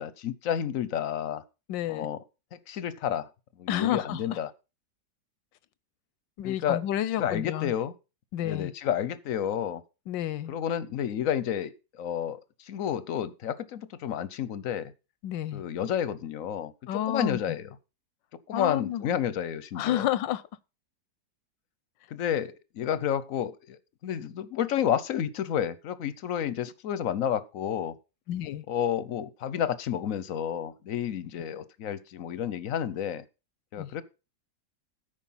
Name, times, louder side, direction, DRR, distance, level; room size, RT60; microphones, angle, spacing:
voice 1, 0.0-1.4 1.9-2.2 2.7-3.3 3.6-4.5 6.4-6.8 7.2-7.9 8.4-9.8 10.5-12.4 12.7-14.9 15.5-17.7 18.5-20.1 22.1-27.9 28.7-33.2 33.7-34.0, left 9 dB, 60° left, 0.9 m, -30 dB
voice 2, 1.7-2.1 3.7-4.4 6.4-7.7 8.3-8.7 10.1-10.5 15.2-15.6 16.9-17.4 18.5-19.0 19.7-20.4 28.3-28.6 33.8-33.9, left 11 dB, 90° left, 1.4 m, -30 dB
13.5 x 5.2 x 5.6 m
omnidirectional pair, 1.9 m